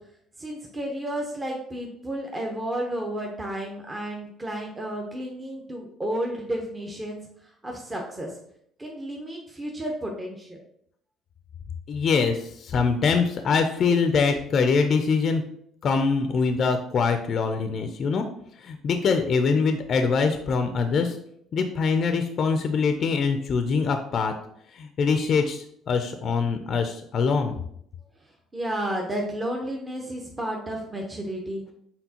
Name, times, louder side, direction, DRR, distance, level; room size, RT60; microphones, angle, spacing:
voice 1, 0.4-7.2 7.6-8.4 8.8-10.6 28.5-31.6, right 1 dB, 20° right, 0 dB, 0.7 m, -32 dB
voice 2, 11.9-15.4 15.8-18.2 18.6-21.2 21.5-24.3 24.7-27.6, left 5 dB, 55° left, 7 dB, 0.4 m, -23 dB
4.4 x 3.6 x 2.8 m, 0.70 s
supercardioid pair, 70°, 0 cm